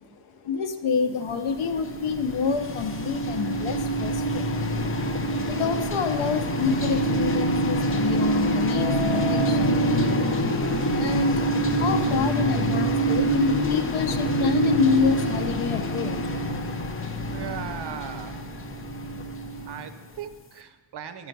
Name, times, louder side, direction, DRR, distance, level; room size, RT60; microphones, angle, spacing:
voice 1, 0.0-10.2 10.6-17.2 18.6-19.6, left 6 dB, 85° left, 7 dB, 0.7 m, -28 dB
sound 1, 1.2-20.2, right 1 dB, 30° left, 0.5 m, -26 dB
sound 2, 6.8-7.6 8.7-13.8, right 1 dB, 5° right, 3.1 m, -32 dB
voice 2, 17.3-18.4 19.6-21.3, right 8 dB, 55° right, 10 dB, 0.7 m, -38 dB
10.5 x 4.8 x 5.3 m, 1.3 s
wide cardioid pair, 145°, 48 cm